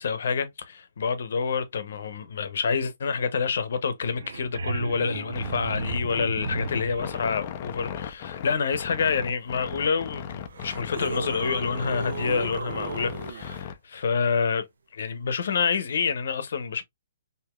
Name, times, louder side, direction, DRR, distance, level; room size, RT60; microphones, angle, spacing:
voice 1, 0.0-14.6 14.9-16.8, left 5 dB, 60° left, 0.8 m, -27 dB
sound 1, 4.1-7.2 9.7-9.8 10.5-13.6 16.1-16.2, right 4 dB, 80° right, 0.6 m, -34 dB
sound 2, 5.3-13.7, left 9 dB, 25° left, 0.4 m, -37 dB
4.8 x 2.7 x 2.2 m
hypercardioid pair, 175°, 0 cm